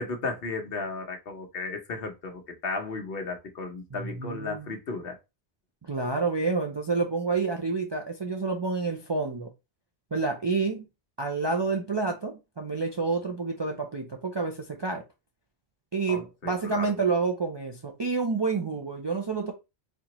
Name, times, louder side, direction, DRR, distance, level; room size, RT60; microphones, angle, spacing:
voice 1, 0.0-5.2 16.1-16.9, left 3 dB, 60° left, 1.0 m, -34 dB
voice 2, 3.9-4.7 5.9-9.5 10.1-10.9 11.2-15.0 15.9-19.5, right 4 dB, 40° right, 0.4 m, -29 dB
4.2 x 2.9 x 2.9 m
omnidirectional pair, 1.1 m